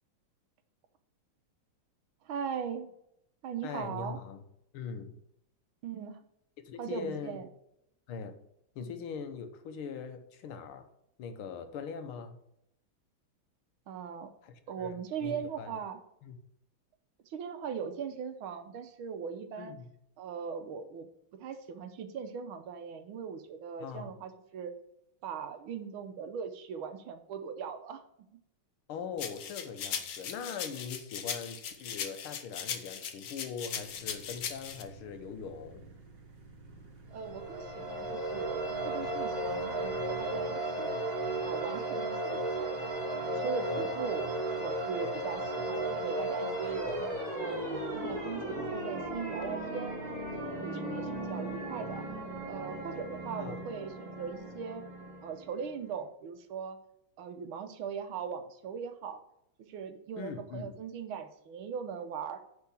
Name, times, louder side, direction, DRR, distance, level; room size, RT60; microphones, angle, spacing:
voice 1, 2.2-2.9 3.4-4.2 5.8-6.2 6.8-7.5 8.8-8.9 13.9-14.3 14.7-16.0 17.3-19.8 20.2-21.1 21.4-24.7 25.2-28.0 28.3-28.4 37.1-41.0 41.4-42.8 43.1-47.6 47.9-50.0 50.4-52.0 52.5-54.9 55.2-56.8 57.2-59.2 59.6-62.4, right 6 dB, 75° right, 8 dB, 1.7 m, -39 dB
voice 2, 3.6-4.4 4.7-5.2 6.7-7.4 8.1-8.4 8.8-10.9 11.2-12.4 14.4-15.8 16.2-16.4 19.6-19.9 23.8-24.1 28.9-35.8 43.7-44.0 53.4-53.6 60.2-60.8, left 6 dB, 80° left, 8 dB, 1.8 m, -41 dB
sound 1, 29.2-34.8, left 8 dB, 65° left, 1.4 m, -38 dB
sound 2, 33.7-40.5, right 2 dB, 60° right, 2.4 m, -52 dB
sound 3, 37.2-55.8, right 1 dB, 20° right, 2.8 m, -35 dB
9.3 x 3.9 x 7.1 m, 0.78 s
omnidirectional pair, 2.3 m